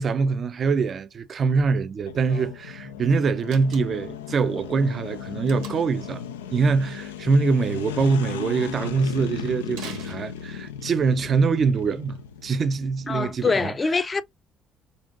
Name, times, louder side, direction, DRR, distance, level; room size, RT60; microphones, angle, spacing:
voice 1, 0.0-6.2 6.5-13.7, right 4 dB, 45° right, 0.5 m, -24 dB
sound 1, 2.1-13.4, left 8 dB, 85° left, 0.4 m, -36 dB
Slam, 3.4-4.2 5.5-6.0 9.7-10.8, right 7 dB, 75° right, 1.1 m, -43 dB
voice 2, 13.1-14.2, left 4 dB, 35° left, 0.5 m, -24 dB
5.2 x 2.5 x 2.5 m
hypercardioid pair, 50°, 0 cm